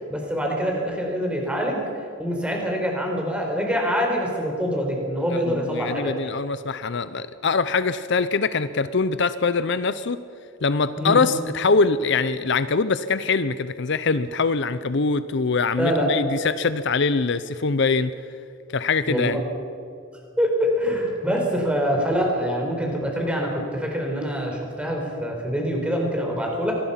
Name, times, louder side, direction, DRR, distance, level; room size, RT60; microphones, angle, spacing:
voice 1, 0.1-1.8 2.2-6.1 11.0-11.2 15.8-16.1 19.1-19.3 20.4-26.7, equal, 5° right, 0 dB, 4.3 m, -25 dB
voice 2, 5.3-10.2 10.6-18.1 18.7-19.4, left 4 dB, 60° left, 13 dB, 0.6 m, -23 dB
25.0 x 19.5 x 5.8 m, 2.5 s
head